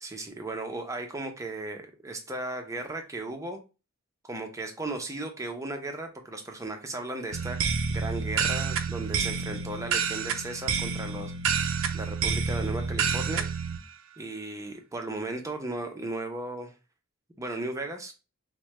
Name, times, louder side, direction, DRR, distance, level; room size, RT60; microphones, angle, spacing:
voice 1, 0.0-3.6 4.2-11.3 11.9-13.5 14.2-16.7 17.4-18.1, right 2 dB, 15° right, 4 dB, 0.6 m, -36 dB
sound 1, 7.3-13.8, right 5 dB, 65° right, 0.4 m, -29 dB
4.5 x 2.1 x 3.0 m, 0.30 s
head